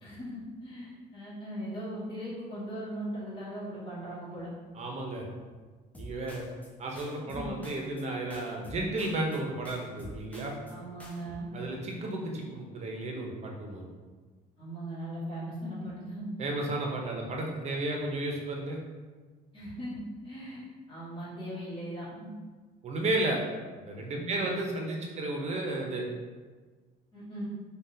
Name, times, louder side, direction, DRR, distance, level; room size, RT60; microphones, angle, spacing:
voice 1, 0.0-4.5 7.2-7.6 10.7-11.5 14.6-16.6 19.5-22.3 24.1-24.5 27.1-27.4, right 1 dB, 30° left, -10 dB, 1.2 m, -39 dB
voice 2, 4.7-5.2 6.0-6.4 6.8-10.6 11.5-13.9 16.4-18.8 22.8-23.4 23.8-26.0, right 2 dB, 40° right, 0 dB, 0.6 m, -33 dB
sound 1, 5.9-6.7 7.0-8.1 8.3-9.4 9.6-10.7 11.0-11.4, equal, 10° left, 0.5 m, -47 dB
3.5 x 2.3 x 2.7 m, 1.4 s
cardioid pair, 110°, 17 cm